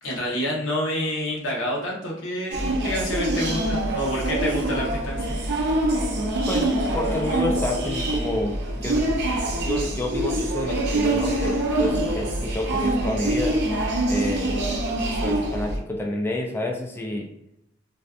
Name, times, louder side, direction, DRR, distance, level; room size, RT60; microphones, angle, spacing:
voice 1, 0.0-5.4, equal, 90° left, -3 dB, 0.9 m, -28 dB
sound 1, 2.5-15.8, right 1 dB, 60° right, 0.5 m, -25 dB
voice 2, 6.5-9.1 9.6-13.6 14.1-14.5 15.0-17.3, left 1 dB, 10° left, 1 dB, 0.3 m, -29 dB
2.5 x 2.3 x 2.3 m, 0.81 s
head